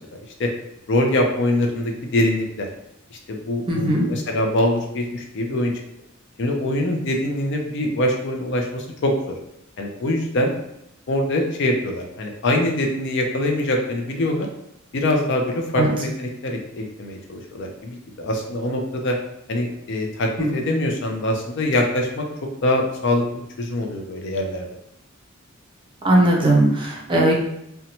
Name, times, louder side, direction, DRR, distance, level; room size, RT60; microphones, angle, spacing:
voice 1, 0.9-2.7 3.1-5.7 6.4-9.4 9.8-10.5 11.1-14.5 14.9-19.1 19.5-22.3 22.6-24.7, left 1 dB, 60° left, 2 dB, 0.5 m, -23 dB
voice 2, 3.7-4.0 15.8-15.9 20.4-20.5 26.0-27.4, right 1 dB, 25° right, -2 dB, 0.5 m, -18 dB
2.7 x 2.1 x 2.9 m, 0.80 s
head